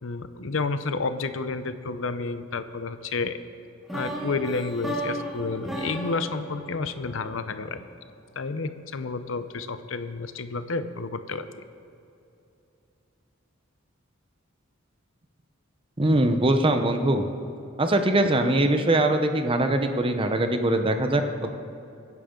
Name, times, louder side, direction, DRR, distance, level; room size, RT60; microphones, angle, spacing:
voice 1, 0.0-3.4 3.9-7.9 8.4-11.5, left 3 dB, 70° left, 11 dB, 0.7 m, -30 dB
sound 1, 3.9-7.9, equal, ahead, 2.0 m, -35 dB
voice 2, 16.0-17.3 17.8-21.2, right 1 dB, 25° right, 6 dB, 0.7 m, -22 dB
23.5 x 10.5 x 3.8 m, 2.7 s
head